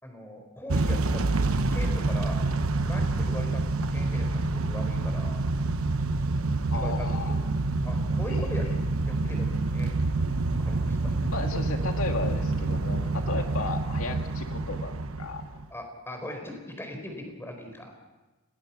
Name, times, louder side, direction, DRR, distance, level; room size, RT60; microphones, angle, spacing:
voice 1, 0.0-2.5 2.8-5.4 5.7-5.8 6.7-7.4 7.8-10.0 10.6-11.3 12.5-12.8 15.7-17.9, left 1 dB, 10° left, 4 dB, 4.5 m, -40 dB
Motor vehicle (road) / Engine starting / Accelerating revving vroom, 0.7-15.7, right 3 dB, 80° right, 1.0 m, -27 dB
voice 2, 6.7-7.4 8.3-8.7 11.3-14.9 15.2-15.4, left 3 dB, 85° left, 4 dB, 2.1 m, -34 dB
29.5 x 18.0 x 5.9 m, 1.2 s
head